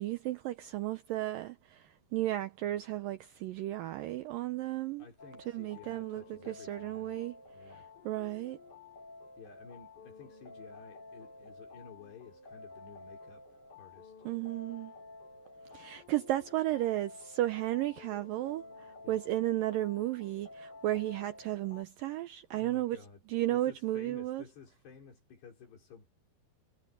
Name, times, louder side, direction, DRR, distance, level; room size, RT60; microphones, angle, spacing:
voice 1, 0.0-5.0 5.5-7.4 8.1-8.6 14.3-14.9 15.7-23.0 23.3-24.4, right 15 dB, 85° right, 2.0 m, -34 dB
voice 2, 5.0-7.2 7.5-7.9 9.4-14.3 19.0-19.2 22.5-23.2 23.5-26.1, left 6 dB, 75° left, 6.9 m, -53 dB
sound 1, 5.2-21.8, left 3 dB, 30° left, 2.2 m, -52 dB
omnidirectional pair, 4.8 m